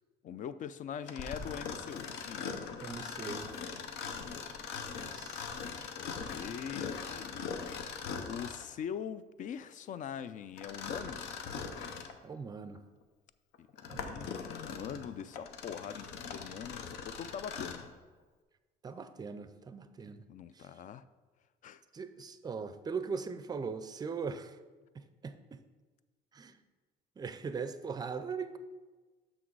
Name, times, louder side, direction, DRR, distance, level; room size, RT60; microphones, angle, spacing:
voice 1, 0.2-2.5 6.0-7.5 8.3-11.3 13.6-17.8 20.3-21.0 21.6-21.8, left 8 dB, 50° left, 0.4 m, -42 dB
Mechanisms, 1.1-8.7 10.6-12.2 12.8-12.9 13.5-17.9, left 6 dB, 85° left, 0.7 m, -41 dB
voice 2, 2.8-3.5 5.0-5.5 12.2-12.8 13.8-14.3 18.8-20.2 20.5-20.7 21.9-24.6 24.9-25.6 26.3-26.6 27.2-28.6, right 5 dB, 25° right, 0.4 m, -40 dB
6.2 x 6.2 x 4.6 m
cardioid pair, 110°, 17 cm